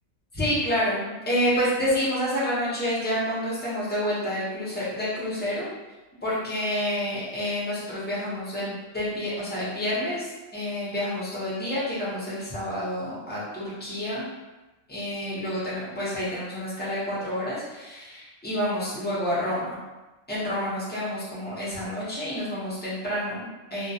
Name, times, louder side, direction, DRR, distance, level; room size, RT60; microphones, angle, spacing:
voice 1, 0.3-5.7 6.2-14.3 14.9-19.8 20.3-23.9, equal, 15° left, -9 dB, 0.3 m, -29 dB
2.2 x 2.2 x 2.7 m, 1.1 s
omnidirectional pair, 1.4 m